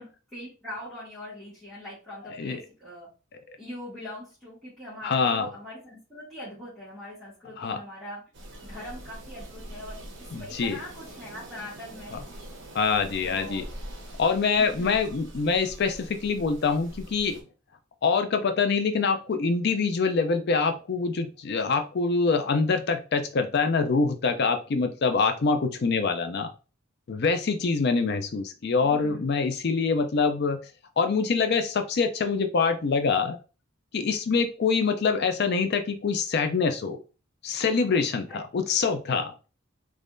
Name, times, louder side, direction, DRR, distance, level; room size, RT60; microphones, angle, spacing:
voice 1, 0.0-3.1 3.6-8.2 8.6-12.2 13.2-13.6 14.5-15.0 28.8-29.2 38.3-38.4, left 1 dB, ahead, -12 dB, 1.8 m, -42 dB
voice 2, 5.0-5.5 7.6-7.8 10.3-10.8 12.1-12.2 12.7-13.6 14.2-17.4 18.0-26.5 27.1-30.6 31.0-33.4 33.9-37.0 37.4-39.3, left 4 dB, 50° left, 7 dB, 0.4 m, -25 dB
sound 1, 8.3-17.4, right 1 dB, 60° right, 1.1 m, -43 dB
3.6 x 3.2 x 2.6 m, 0.33 s
head